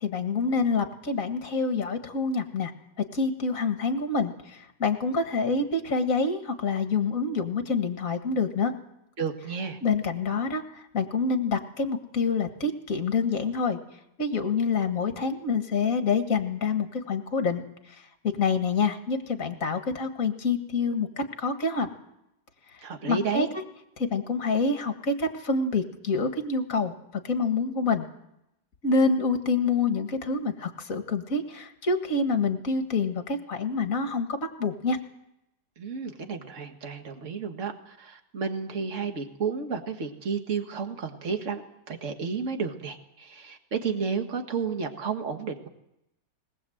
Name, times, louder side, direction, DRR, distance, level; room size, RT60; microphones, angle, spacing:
voice 1, 0.0-2.7 3.1-8.7 9.8-10.6 10.9-13.8 14.2-17.6 18.4-21.9 23.1-23.5 24.0-26.9 27.2-28.1 28.8-35.0, left 4 dB, 45° left, 7 dB, 2.0 m, -27 dB
voice 2, 9.2-9.8 22.8-23.5 35.8-41.6 41.9-45.7, right 5 dB, 40° right, 5 dB, 2.0 m, -32 dB
20.5 x 20.0 x 7.8 m, 0.83 s
omnidirectional pair, 2.1 m